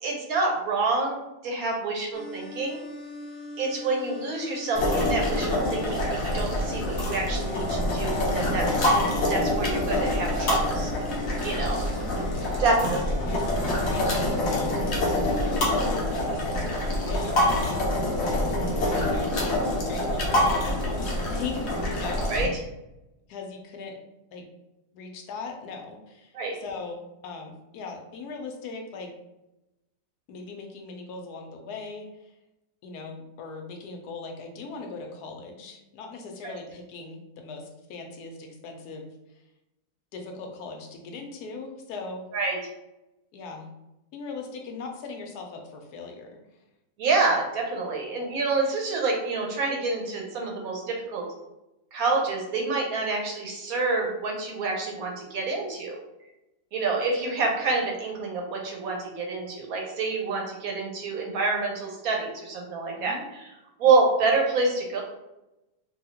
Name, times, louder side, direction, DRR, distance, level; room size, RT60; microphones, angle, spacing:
voice 1, 0.0-2.8 3.6-8.9 9.3-10.9 11.4-11.8 12.6-13.0 22.3-22.5 26.3-26.6 36.4-36.5 42.3-42.6 47.0-51.2 51.9-56.0 56.7-63.5 63.8-65.0, right 3 dB, 70° right, 0 dB, 1.1 m, -27 dB
sound 1, 2.1-15.6, left 1 dB, 30° left, 0.6 m, -42 dB
Cart bieng pulled full of bones and tin cups, 4.7-22.4, left 1 dB, 55° left, 0.9 m, -26 dB
voice 2, 11.4-12.0 12.6-12.8 13.1-13.5 13.9-14.9 15.3-18.0 19.0-19.6 19.9-22.3 23.3-24.0 24.3-24.4 24.9-29.1 30.3-32.3 32.8-39.1 40.1-42.3 43.3-43.7 44.1-46.4 63.0-63.2, left 4 dB, 80° left, 3 dB, 1.1 m, -39 dB
2.9 x 2.7 x 2.8 m, 0.94 s
omnidirectional pair, 1.7 m